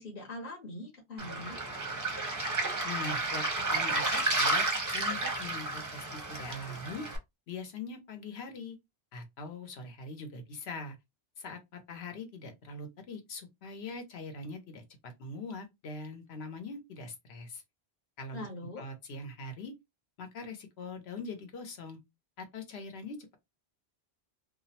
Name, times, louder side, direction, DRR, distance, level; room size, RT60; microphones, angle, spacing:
voice 1, 0.0-1.6 18.3-18.8, left 1 dB, 55° left, 0.9 m, -42 dB
Waves surf, 1.2-7.2, right 2 dB, 25° right, 0.5 m, -31 dB
voice 2, 2.8-4.7 4.9-7.1 7.5-8.8 9.1-11.0 11.4-17.6 18.2-18.5 18.8-19.7 20.2-22.0 22.4-23.4, left 3 dB, 85° left, 1.0 m, -42 dB
2.5 x 2.0 x 2.7 m
omnidirectional pair, 1.1 m